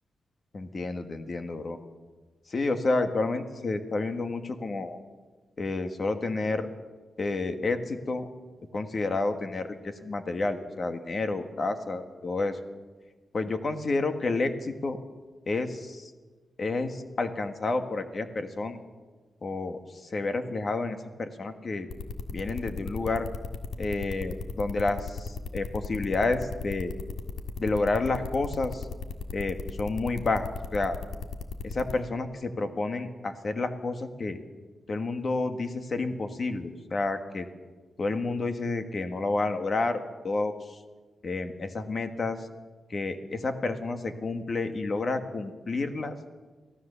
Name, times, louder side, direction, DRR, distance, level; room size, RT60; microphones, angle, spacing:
voice 1, 0.5-1.8 2.5-5.0 5.6-6.7 7.2-8.3 8.7-12.6 13.3-15.0 15.5-16.1 16.6-18.8 19.4-21.9 22.3-23.3 23.8-26.9 27.6-28.9 29.3-31.0 31.6-34.4 34.9-37.4 38.0-40.8 41.2-42.5 42.9-46.1, left 3 dB, 35° left, 7 dB, 1.6 m, -30 dB
sound 1, 21.9-31.9, left 5 dB, 85° left, 1.7 m, -36 dB
24.0 x 16.0 x 6.9 m, 1.3 s
wide cardioid pair, 170°, 0 cm